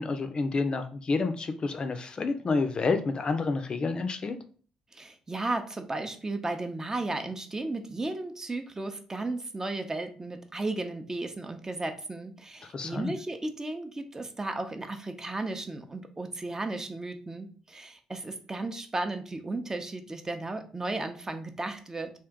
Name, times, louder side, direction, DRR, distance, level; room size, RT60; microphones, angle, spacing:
voice 1, 0.0-4.4 12.7-13.1, left 3 dB, 40° left, 7 dB, 0.6 m, -29 dB
voice 2, 4.9-22.1, right 2 dB, 25° right, 6 dB, 0.7 m, -34 dB
3.6 x 2.5 x 3.6 m, 0.42 s
figure-of-eight pair, 45°, 2 cm